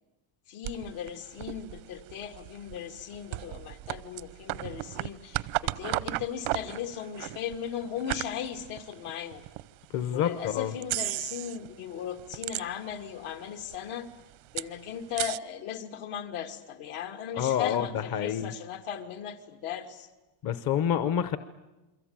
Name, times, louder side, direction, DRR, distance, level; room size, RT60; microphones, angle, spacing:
voice 1, 0.5-9.5 10.1-14.1 14.5-20.1, left 9 dB, 75° left, 5 dB, 2.6 m, -37 dB
sound 1, 0.6-9.7 10.2-10.3 10.8-11.7 12.0-13.1 13.4-13.5 13.7-15.4, right 20 dB, 85° right, 0.8 m, -35 dB
voice 2, 9.9-10.7 17.4-18.5 20.4-21.4, left 9 dB, 45° left, 12 dB, 0.9 m, -28 dB
28.5 x 23.0 x 8.9 m, 1.1 s
cardioid pair, 170°, 49 cm